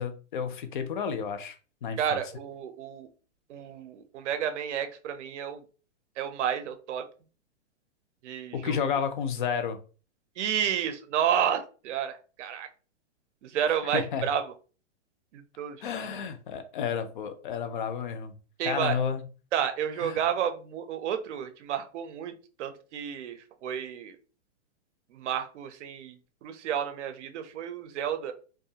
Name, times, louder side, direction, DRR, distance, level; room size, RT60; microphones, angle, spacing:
voice 1, 0.0-1.6 1.8-2.2 8.5-9.8 13.9-14.3 15.8-18.3 18.6-19.2 20.0-20.2, left 7 dB, 45° left, 9 dB, 0.4 m, -31 dB
voice 2, 2.0-3.1 3.5-5.6 6.2-7.1 8.2-8.8 10.4-12.7 13.4-14.5 15.3-15.8 18.6-19.0 19.5-24.2 25.1-28.3, right 9 dB, 75° right, 8 dB, 0.5 m, -31 dB
2.4 x 2.3 x 2.7 m, 0.37 s
hypercardioid pair, 165°, 36 cm